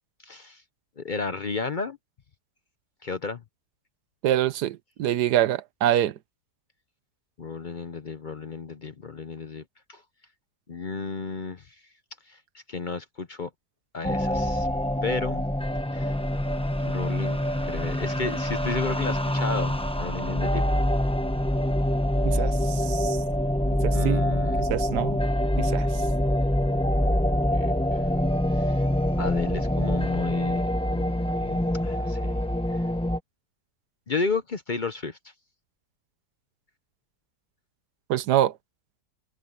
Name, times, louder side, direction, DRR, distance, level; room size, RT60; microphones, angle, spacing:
voice 1, 0.2-0.6 1.0-2.0 3.0-3.4 7.4-9.6 9.9-10.0 10.7-11.7 12.3-13.5 13.9-14.7 15.0-15.4 15.9-16.1 16.8-17.4 17.6-20.6 23.9-24.7 27.5-27.7 28.5-28.8 29.2-31.6 31.8-32.4 34.1-35.2, left 4 dB, 45° left, 0.6 m, -33 dB
voice 2, 4.2-6.1 22.2-23.2 23.8-24.2 24.6-25.2 25.6-26.0 38.1-38.5, right 12 dB, 75° right, 1.3 m, -25 dB
sound 1, 14.0-33.2, left 1 dB, 5° left, 0.7 m, -25 dB
omnidirectional pair, 1.8 m